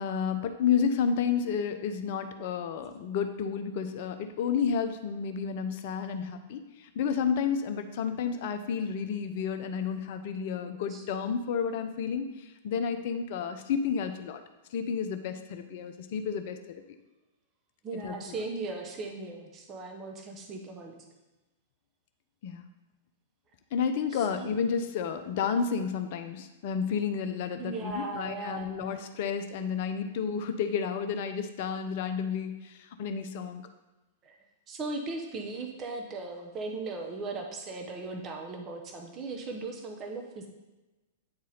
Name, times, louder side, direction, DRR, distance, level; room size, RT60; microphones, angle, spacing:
voice 1, 0.0-14.4 14.7-16.8 18.0-18.4 22.4-22.7 23.7-33.7, left 6 dB, 45° left, 8 dB, 0.6 m, -31 dB
voice 2, 17.8-21.0 24.1-24.5 27.6-28.8 34.2-34.4 34.7-40.5, right 3 dB, 25° right, 2 dB, 0.9 m, -38 dB
8.7 x 4.2 x 3.9 m, 1.1 s
figure-of-eight pair, 100°, 0 cm